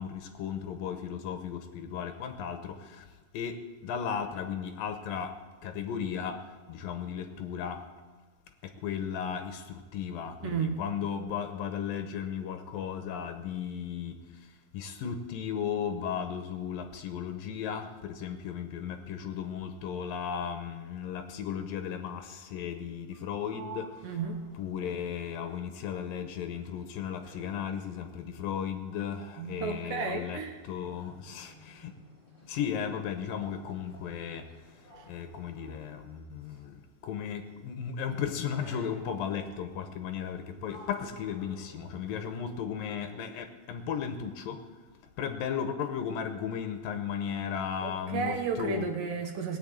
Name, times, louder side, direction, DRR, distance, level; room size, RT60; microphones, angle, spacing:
voice 1, 0.0-3.1 3.3-5.3 5.6-6.4 6.7-7.8 8.6-14.2 14.7-23.9 24.5-31.9 32.5-34.4 35.1-36.8 37.0-44.6 45.2-48.9, left 8 dB, 70° left, 6 dB, 2.5 m, -35 dB
Sliding door, 23.1-26.3 26.6-36.8 37.7-38.0 38.6-39.5 40.1-42.6, right 2 dB, 25° left, 6.5 m, -54 dB
voice 2, 24.0-24.4 29.4-30.6 47.8-49.6, right 5 dB, 70° right, 5 dB, 2.5 m, -33 dB
19.0 x 6.7 x 8.8 m, 1.4 s
omnidirectional pair, 4.5 m